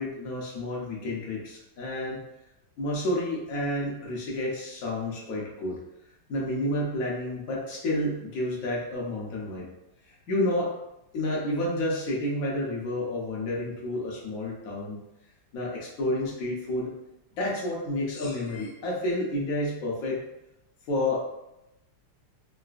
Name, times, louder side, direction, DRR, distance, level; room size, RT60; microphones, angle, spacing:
voice 1, 0.0-2.2 2.8-5.8 6.3-9.7 10.1-10.8 11.1-15.0 15.5-16.9 17.4-20.2 20.9-21.3, left 1 dB, 85° left, -3 dB, 0.7 m, -30 dB
3.8 x 2.3 x 2.4 m, 0.90 s
omnidirectional pair, 2.4 m